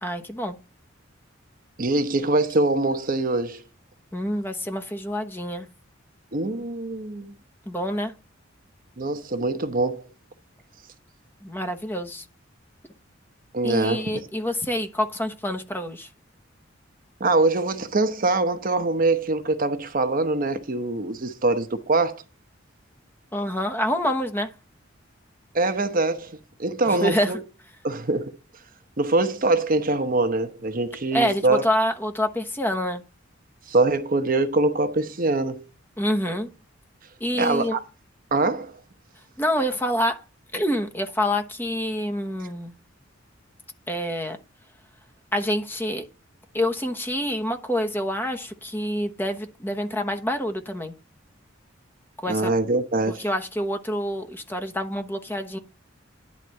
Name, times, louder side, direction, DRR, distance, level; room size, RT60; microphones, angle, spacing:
voice 1, 0.0-0.6 4.1-5.7 7.7-8.1 11.4-12.2 13.6-16.1 23.3-24.5 26.8-27.3 31.1-33.0 36.0-36.5 37.2-37.8 39.4-40.2 40.5-42.7 43.9-44.4 45.3-46.1 46.5-50.9 52.2-52.5 53.2-55.6, equal, 10° left, 1.1 m, -27 dB
voice 2, 1.8-3.6 6.3-7.3 9.0-10.1 13.5-14.2 17.2-22.2 25.5-27.4 27.8-28.3 29.0-31.6 33.7-35.6 37.4-37.8 38.3-38.7 52.3-53.2, right 2 dB, 45° right, 1.0 m, -23 dB
11.0 x 4.1 x 7.5 m
head